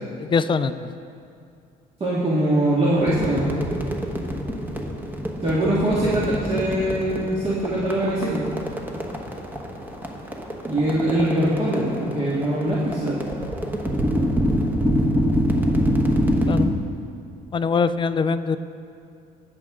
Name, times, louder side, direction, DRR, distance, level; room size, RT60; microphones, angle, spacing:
voice 1, 0.2-0.7 16.4-16.7 17.5-18.6, left 5 dB, 30° left, 12 dB, 0.4 m, -22 dB
voice 2, 2.0-3.5 5.4-8.4 10.6-13.2, right 1 dB, 35° right, -8 dB, 1.9 m, -22 dB
sound 1, 3.0-16.6, equal, 10° right, 1.2 m, -25 dB
19.5 x 6.5 x 3.7 m, 2.4 s
cardioid pair, 110°, 17 cm